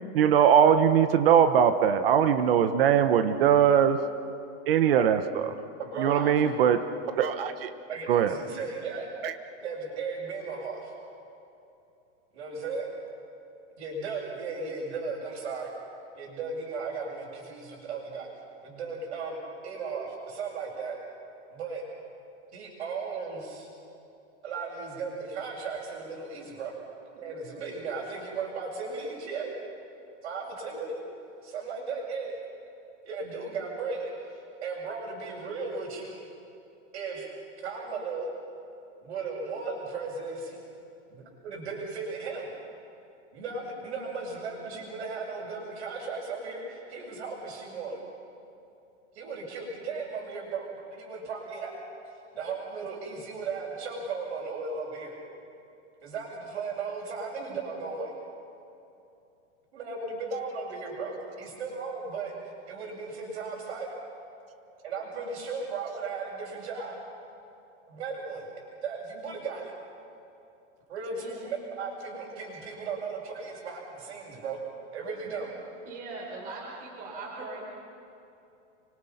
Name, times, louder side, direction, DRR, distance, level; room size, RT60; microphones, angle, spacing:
voice 1, 0.1-4.0 4.7-5.5 6.0-6.8 7.2-7.7 8.1-8.3 9.2-9.3, right 8 dB, 50° right, 9 dB, 1.2 m, -21 dB
voice 2, 5.8-6.5 7.9-9.1 9.6-10.9 12.3-12.8 13.8-15.7 16.1-18.3 18.6-19.4 19.6-20.9 21.5-21.8 22.5-23.7 24.4-26.7 27.1-29.5 30.2-31.0 31.4-32.3 33.0-36.1 36.9-37.3 37.6-38.3 39.0-40.6 41.1-42.5 43.3-48.0 49.1-51.7 52.1-55.1 56.0-58.1 59.7-62.3 62.7-63.9 64.8-67.0 67.9-68.5 68.8-69.7 70.9-74.6 74.9-75.5, right 4 dB, 65° right, -8 dB, 7.8 m, -36 dB
voice 3, 75.9-77.6, right 3 dB, 20° right, -4 dB, 5.4 m, -40 dB
30.0 x 25.0 x 5.8 m, 2.7 s
supercardioid pair, 175°, 37 cm